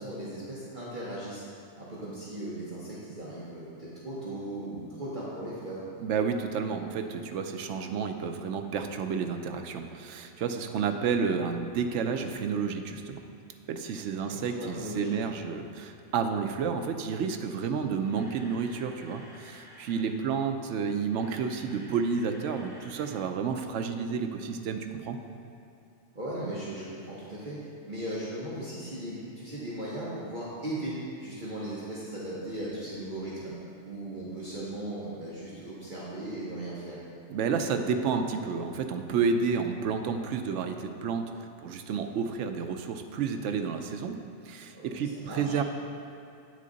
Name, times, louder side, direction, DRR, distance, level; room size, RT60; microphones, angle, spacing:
voice 1, 0.0-1.4 1.8-5.8 14.2-15.3 26.1-27.6 27.8-33.5 33.8-37.0 44.7-45.6, right 1 dB, 40° right, -8 dB, 1.2 m, -37 dB
voice 2, 6.0-13.2 13.7-25.2 37.3-44.2 44.4-45.6, right 5 dB, 70° right, 6 dB, 0.9 m, -30 dB
Camera, 18.0-20.1 20.9-23.2 23.4-23.6 24.1-24.2, equal, 5° right, 1.2 m, -52 dB
8.5 x 6.4 x 3.9 m, 2.6 s
omnidirectional pair, 1.3 m